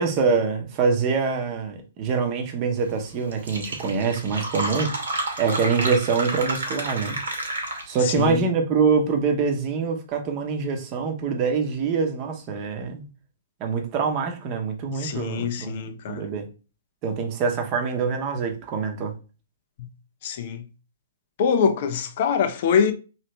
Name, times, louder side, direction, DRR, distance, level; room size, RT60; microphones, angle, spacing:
voice 1, 0.0-4.9 5.4-7.2 7.9-13.0 13.6-16.5 17.0-19.1, right 5 dB, 35° right, 0.8 m, -25 dB
Fill (with liquid), 3.0-3.1 3.3-8.1, right 2 dB, 70° right, 1.0 m, -30 dB
voice 2, 8.0-8.4 14.9-16.3 19.8-19.9 20.2-20.7 21.4-22.9, left 7 dB, 50° left, 0.4 m, -24 dB
2.9 x 2.9 x 3.1 m
figure-of-eight pair, 115°, 0 cm